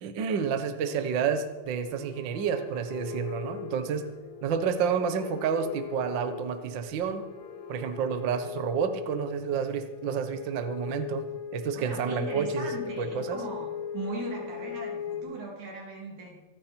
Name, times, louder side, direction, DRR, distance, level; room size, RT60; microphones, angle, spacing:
voice 1, 0.0-4.1 4.4-7.2 7.7-11.3 11.5-12.7 13.0-13.4, right 7 dB, 60° right, 9 dB, 1.2 m, -30 dB
sound 1, 0.9-15.2, left 7 dB, 85° left, 2.6 m, -39 dB
voice 2, 11.7-16.4, right 3 dB, 75° right, -1 dB, 4.2 m, -39 dB
25.0 x 9.6 x 4.4 m, 1.1 s
omnidirectional pair, 3.4 m